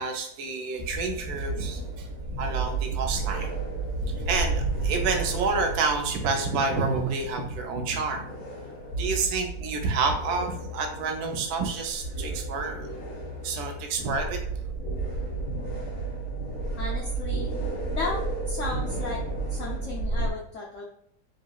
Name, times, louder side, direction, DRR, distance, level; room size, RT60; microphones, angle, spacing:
voice 1, 0.0-3.5 4.1-8.3 8.9-12.9 13.4-14.4, right 4 dB, 70° right, 3 dB, 1.0 m, -29 dB
sound 1, 0.8-20.3, right 3 dB, 50° left, 1.0 m, -32 dB
voice 2, 16.8-17.5 17.9-18.2 18.5-19.2 19.5-20.8, left 3 dB, 80° left, -2 dB, 0.6 m, -34 dB
2.9 x 2.8 x 2.3 m, 0.69 s
omnidirectional pair, 1.9 m